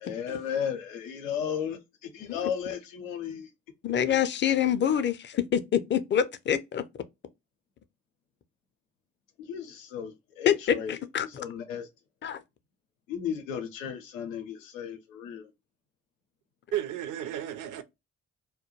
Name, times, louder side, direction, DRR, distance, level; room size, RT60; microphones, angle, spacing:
voice 1, 0.0-3.5 9.4-10.9 11.4-11.9 13.1-15.5, left 8 dB, 90° left, 0.6 m, -34 dB
voice 2, 3.8-6.8 10.5-11.3 12.2-12.4, left 9 dB, 30° left, 0.4 m, -26 dB
voice 3, 16.7-17.8, right 11 dB, 55° right, 0.5 m, -33 dB
2.2 x 2.2 x 2.9 m
hypercardioid pair, 40°, 38 cm